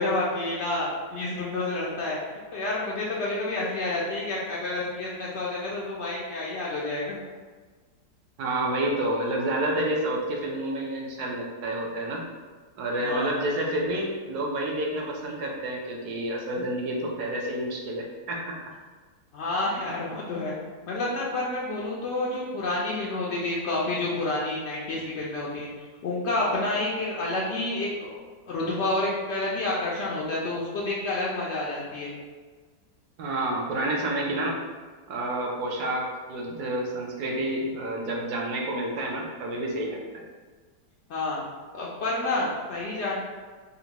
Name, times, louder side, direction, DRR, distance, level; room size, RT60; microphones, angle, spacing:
voice 1, 0.0-2.2 2.5-7.2 13.0-13.3 19.3-20.5 20.9-25.7 26.0-28.2 28.5-32.1 41.1-41.4 41.7-43.2, left 2 dB, 85° left, -5 dB, 0.6 m, -29 dB
voice 2, 8.4-12.2 12.8-18.6 33.2-34.6 35.1-40.0, right 1 dB, 75° right, -1 dB, 1.1 m, -29 dB
3.9 x 2.2 x 2.8 m, 1.4 s
omnidirectional pair, 1.8 m